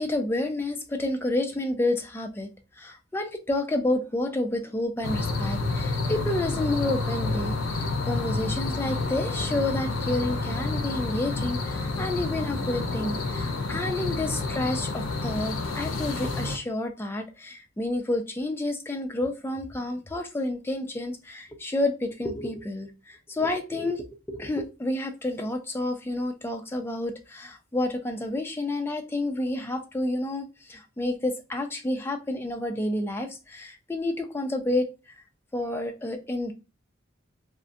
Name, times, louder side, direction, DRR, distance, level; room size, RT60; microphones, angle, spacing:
voice 1, 0.0-2.5 2.8-35.2 35.5-36.5, left 1 dB, 10° left, 0.3 m, -30 dB
sound 1, 5.0-16.6, left 3 dB, 85° left, 0.5 m, -29 dB
2.4 x 2.1 x 2.5 m
head